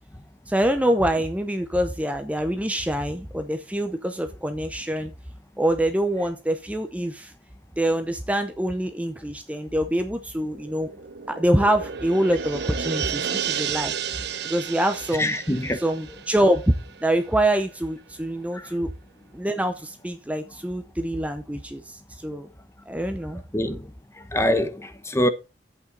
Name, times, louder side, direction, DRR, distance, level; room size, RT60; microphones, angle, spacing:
voice 1, 0.5-5.1 5.6-7.3 7.8-10.9 11.3-15.3 15.7-16.7 17.0-18.9 19.3-22.5 22.9-23.4, right 1 dB, 10° right, 0.7 m, -25 dB
sound 1, 10.4-17.4 17.7-17.8, right 7 dB, 65° right, 0.8 m, -32 dB
voice 2, 15.2-15.8 18.5-18.7 23.5-23.9 24.2-25.3, left 1 dB, 15° left, 0.9 m, -24 dB
10.0 x 8.3 x 3.9 m
head